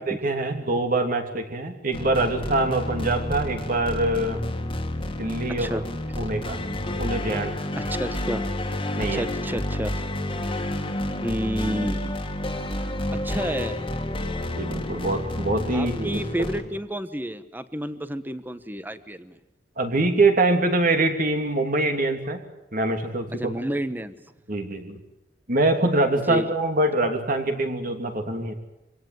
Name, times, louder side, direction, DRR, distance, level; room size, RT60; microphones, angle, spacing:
voice 1, 0.0-4.4 5.2-5.8 6.2-6.6 7.0-7.5 9.0-9.2 14.5-16.2 19.8-22.4 22.7-23.4 24.5-25.0 25.5-28.5, right 2 dB, 50° right, 5 dB, 2.9 m, -24 dB
sound 1, 1.9-16.6, left 1 dB, 30° left, 2.2 m, -30 dB
voice 2, 7.8-8.4 9.0-9.9 11.2-12.1 13.1-13.8 15.7-19.4 23.4-24.1 26.1-26.5, right 1 dB, 10° right, 13 dB, 1.1 m, -30 dB
25.5 x 17.5 x 9.4 m, 0.93 s
head